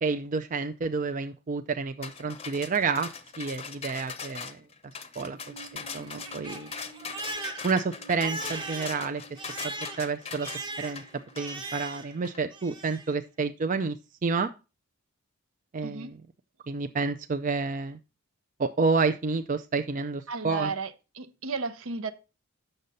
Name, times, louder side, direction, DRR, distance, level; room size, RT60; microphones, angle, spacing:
voice 1, 0.0-3.1 3.4-4.6 5.2-6.7 7.6-9.2 9.6-10.5 10.8-11.0 11.4-14.0 14.2-14.5 15.7-16.2 16.7-18.0 18.6-20.7, right 4 dB, 35° right, 0.4 m, -29 dB
sound 1, 2.0-12.4, left 5 dB, 30° left, 0.7 m, -41 dB
Crying sobbing, 5.4-12.2 12.5-13.1, right 2 dB, 20° right, 0.9 m, -40 dB
voice 2, 20.3-20.9 21.1-22.1, right 4 dB, 70° right, 0.7 m, -33 dB
7.9 x 6.6 x 4.1 m
head